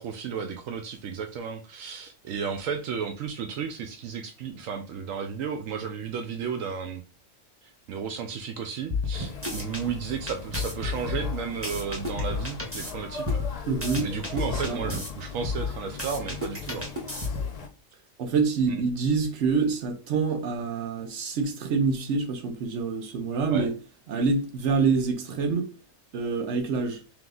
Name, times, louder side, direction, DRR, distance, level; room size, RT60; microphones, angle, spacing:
voice 1, 0.0-7.0 7.6-13.4 14.0-16.9 18.7-18.8 23.5-23.7, right 6 dB, 80° right, 1.0 m, -33 dB
sound 1, 8.9-9.8 10.3-12.9 13.3-15.1 15.4-17.6, left 3 dB, 10° right, 0.9 m, -31 dB
sound 2, 9.1-17.7, left 5 dB, 45° left, 0.5 m, -40 dB
voice 2, 13.7-14.1 14.5-14.8 18.2-23.8 24.1-25.7 26.1-27.0, right 4 dB, 65° right, 1.2 m, -26 dB
3.5 x 3.0 x 3.8 m
omnidirectional pair, 1.4 m